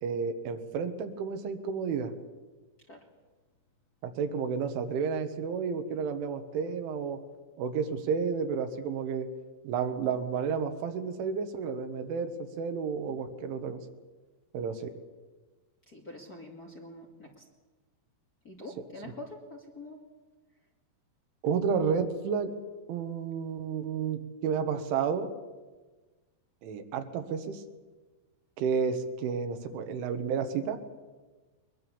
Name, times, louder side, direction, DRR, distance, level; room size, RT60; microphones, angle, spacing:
voice 1, 0.0-2.1 4.0-7.2 7.6-9.3 9.7-13.8 14.5-14.9 21.4-22.5 22.9-25.3 26.6-27.6 28.6-30.8, right 6 dB, 85° right, 6 dB, 4.0 m, -31 dB
voice 2, 15.9-17.4 18.4-20.0, left 1 dB, 35° left, -1 dB, 1.6 m, -45 dB
22.0 x 22.0 x 7.2 m, 1.3 s
omnidirectional pair, 5.4 m